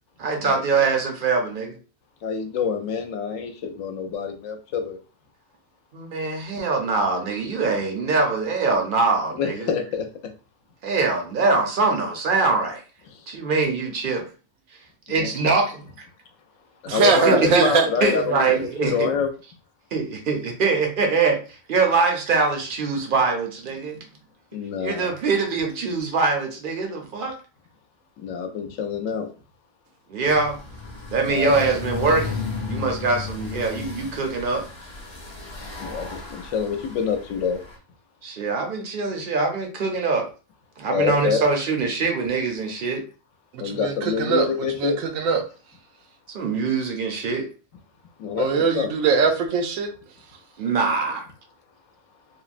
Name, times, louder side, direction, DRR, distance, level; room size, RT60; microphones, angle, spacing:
voice 1, 0.2-1.8 5.9-9.7 10.8-12.8 13.3-14.3 15.1-16.1 17.0-17.7 18.0-19.1 19.9-24.0 24.8-27.4 30.1-30.6 31.1-34.7 38.2-40.3 40.8-43.0 46.3-47.5 50.6-51.3, right 4 dB, 55° right, 0.6 m, -23 dB
voice 2, 2.2-5.0 9.3-10.1 13.1-13.3 15.1-15.3 16.8-19.3 24.5-25.1 28.2-29.3 31.3-31.8 35.8-37.6 40.9-41.4 43.6-45.0 48.2-48.9, left 6 dB, 80° left, 1.0 m, -27 dB
voice 3, 16.9-17.9 43.5-44.5 44.8-45.4 48.4-49.9, right 5 dB, 90° right, 1.0 m, -21 dB
sound 1, 30.2-37.8, left 4 dB, 30° left, 0.5 m, -34 dB
3.4 x 2.0 x 2.4 m
omnidirectional pair, 1.4 m